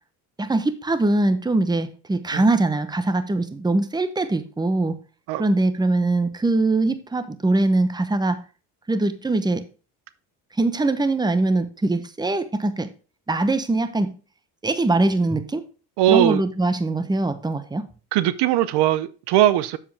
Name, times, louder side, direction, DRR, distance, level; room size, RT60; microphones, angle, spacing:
voice 1, 0.4-5.0 5.4-8.4 8.9-9.6 10.6-12.9 13.3-14.1 14.6-15.6 16.1-17.9, right 2 dB, 10° right, 0.9 m, -22 dB
voice 2, 16.0-16.4 18.1-19.8, right 13 dB, 75° right, 0.7 m, -19 dB
7.3 x 7.2 x 3.4 m
supercardioid pair, 95°, 41 cm